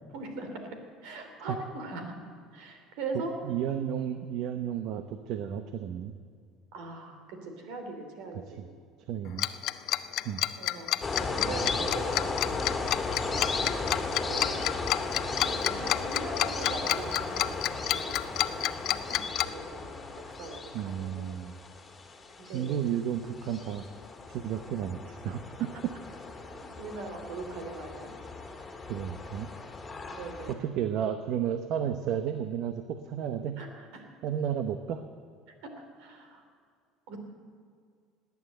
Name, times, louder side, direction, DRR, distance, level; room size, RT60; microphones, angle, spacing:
voice 1, 0.1-0.6 1.0-2.1 2.5-3.3 6.7-8.6 10.6-10.9 11.3-12.4 13.2-13.6 14.1-14.6 15.2-21.4 22.4-22.8 26.8-28.1 30.1-30.6 33.6-34.1 35.6-36.4 37.1-37.2, right 3 dB, 80° right, 5 dB, 2.9 m, -41 dB
voice 2, 3.4-6.1 8.5-8.7 9.1-9.5 10.2-10.4 20.7-21.5 22.5-23.9 24.3-25.9 28.9-29.5 30.5-33.6 34.2-35.0, right 9 dB, 65° right, 8 dB, 0.8 m, -32 dB
Tick-tock, 9.4-19.4, left 15 dB, 60° left, 0.6 m, -28 dB
sound 1, 11.0-30.5, left 3 dB, 20° left, 2.0 m, -36 dB
18.0 x 9.6 x 7.9 m, 2.2 s
supercardioid pair, 110°, 0 cm